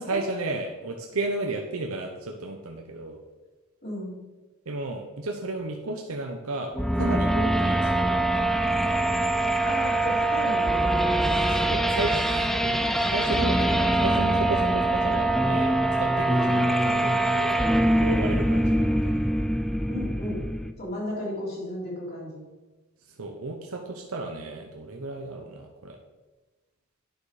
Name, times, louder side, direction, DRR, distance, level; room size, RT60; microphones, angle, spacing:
voice 1, 0.1-3.2 4.7-8.5 11.2-17.6 18.0-19.2 23.1-26.0, right 2 dB, 80° right, 2 dB, 0.9 m, -33 dB
voice 2, 3.8-4.2 9.6-10.7 16.5-16.6 19.9-20.4 20.8-22.4, left 1 dB, 45° left, -6 dB, 2.9 m, -34 dB
sound 1, 6.7-20.7, right 1 dB, ahead, 0.3 m, -23 dB
9.4 x 6.7 x 4.9 m, 1.2 s
head